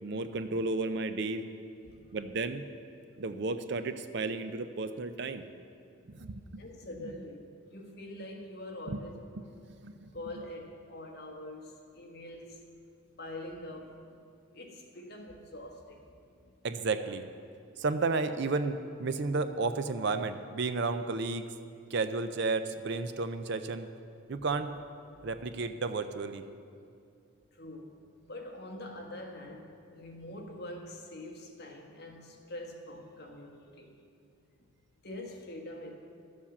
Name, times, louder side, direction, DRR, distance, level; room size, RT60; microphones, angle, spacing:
voice 1, 0.0-1.4 2.1-2.6 3.2-5.5 6.1-6.6 7.0-7.1 8.9-9.0 9.4-10.1 16.6-17.3 17.8-21.5 21.9-23.9 24.3-24.7 25.2-26.4, right 3 dB, 55° right, 10 dB, 0.5 m, -33 dB
voice 2, 6.6-9.2 10.1-12.6 13.2-14.2 14.5-16.0 16.4-16.5 24.3-24.4 27.5-28.0 28.3-34.0 35.0-35.9, left 1 dB, 50° left, 1 dB, 1.5 m, -44 dB
13.0 x 7.3 x 7.1 m, 2.5 s
head